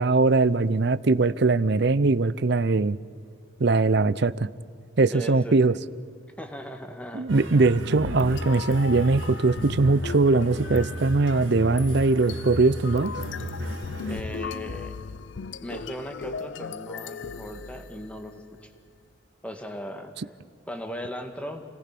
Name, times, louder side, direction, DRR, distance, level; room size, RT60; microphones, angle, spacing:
voice 1, 0.0-3.0 3.6-4.5 5.0-5.7 7.1-13.1, right 3 dB, 55° right, 18 dB, 0.6 m, -21 dB
voice 2, 5.1-5.8 6.4-7.3 14.1-15.0 15.6-18.7 19.4-20.1 20.7-21.6, equal, 5° left, 5 dB, 1.8 m, -38 dB
sound 1, 7.3-14.2, equal, 75° right, 1.9 m, -35 dB
sound 2, 8.0-18.3, left 5 dB, 60° left, 0.5 m, -38 dB
29.0 x 18.5 x 6.0 m, 2.2 s
head